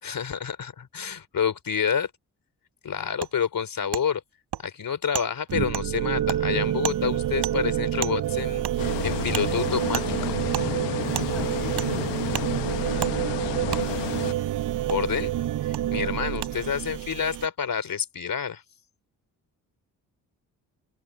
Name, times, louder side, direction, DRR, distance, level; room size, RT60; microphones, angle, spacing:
voice 1, 0.0-2.1 2.8-4.2 4.6-10.3 14.9-15.3 15.7-18.6, left 7 dB, 50° left, 3.4 m, -28 dB
Wood, 3.2-3.3 3.9-4.0 4.5-4.6 5.1-5.3 5.7-5.9 6.3-6.4 6.8-7.0 7.4-7.5 8.0-8.1 8.6-8.8 9.3-9.5 9.9-10.1 10.5-10.7 11.1-11.3 11.8-11.9 12.3-12.5 13.0-13.1 13.7-13.8 14.9-15.0 15.7-15.8 16.4-16.5, right 10 dB, 65° right, 3.6 m, -31 dB
sound 1, 5.5-17.5, right 12 dB, 50° right, 0.7 m, -28 dB
sound 2, 8.8-14.3, left 17 dB, 75° left, 1.2 m, -32 dB
voice 2, 11.1-12.0 12.7-14.0, equal, ahead, 6.9 m, -46 dB
hypercardioid pair, 45°, 42 cm